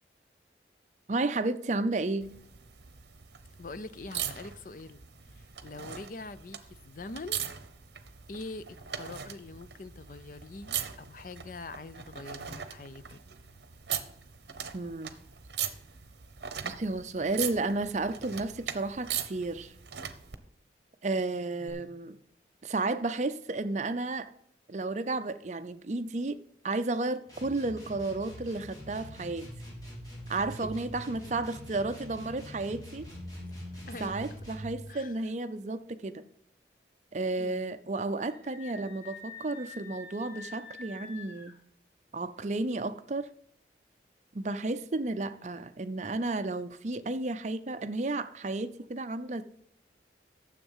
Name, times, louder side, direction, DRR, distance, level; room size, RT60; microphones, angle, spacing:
voice 1, 1.1-2.3 14.7-15.1 16.6-19.7 21.0-22.2 22.6-24.3 24.7-26.4 26.6-29.5 30.3-33.1 34.0-36.2 37.1-41.5 42.1-43.3 44.3-49.4, right 2 dB, 40° right, 11 dB, 0.5 m, -32 dB
sound 1, 2.2-20.4 21.7-21.8, right 9 dB, 70° right, 0.9 m, -40 dB
voice 2, 3.6-5.0 5.3-7.4 8.3-13.2 21.6-22.0 30.6-30.7 31.2-31.3 33.4-33.5 33.9-34.4 34.9-35.2 37.4-37.8, left 3 dB, 50° left, 14 dB, 0.5 m, -44 dB
sound 2, 27.3-34.8, equal, 20° left, 3.4 m, -44 dB
Screaming, 38.2-41.6, left 4 dB, 75° left, 3.9 m, -47 dB
9.9 x 7.3 x 5.5 m, 0.71 s
head